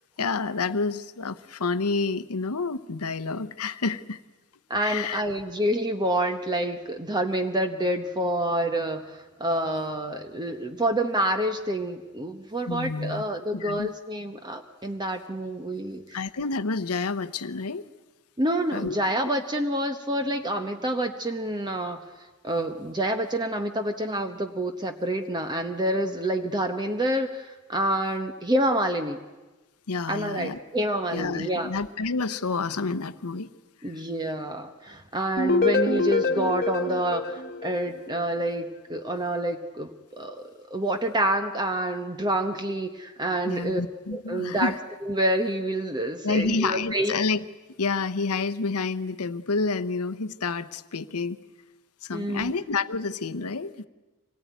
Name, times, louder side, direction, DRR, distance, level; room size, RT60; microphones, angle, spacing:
voice 1, 0.2-4.2 4.8-5.2 12.7-13.2 13.5-13.9 16.1-17.9 18.7-18.9 19.3-19.4 29.9-30.6 31.1-33.5 33.8-34.0 43.4-44.8 46.2-47.4 47.8-51.4 52.0-53.9, left 4 dB, 75° left, 11 dB, 0.9 m, -29 dB
voice 2, 4.7-16.2 18.4-29.2 30.1-31.7 33.8-43.8 44.1-44.7 45.0-47.2 52.1-52.5, right 1 dB, 20° right, 6 dB, 1.0 m, -28 dB
sound 1, 35.4-38.3, left 3 dB, 45° left, 1.5 m, -26 dB
25.5 x 18.5 x 9.3 m, 1.2 s
head